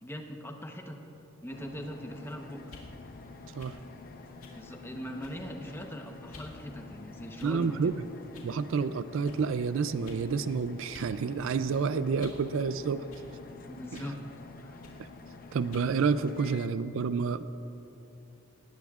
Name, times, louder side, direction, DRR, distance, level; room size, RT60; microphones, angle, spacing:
voice 1, 0.0-1.0 1.4-2.6 4.5-7.9 13.7-14.2 14.6-14.8, equal, 10° left, 3 dB, 0.9 m, -41 dB
sound 1, 1.5-16.7, left 3 dB, 40° left, 0.7 m, -48 dB
sound 2, 2.6-2.9 3.6-3.8 4.4-4.6 5.2-5.5 6.3-6.5 7.4-7.7 8.3-8.5 9.2-9.4 10.0-10.3 10.9-11.1 11.5-12.5 13.1-13.3 13.9-14.2 14.8-15.0 15.7-15.9, left 3 dB, 80° left, 2.2 m, -51 dB
voice 2, 7.4-8.0 8.4-13.0 15.0-15.1 15.5-17.5, right 5 dB, 65° right, 13 dB, 0.4 m, -29 dB
19.5 x 16.5 x 2.4 m, 3.0 s
head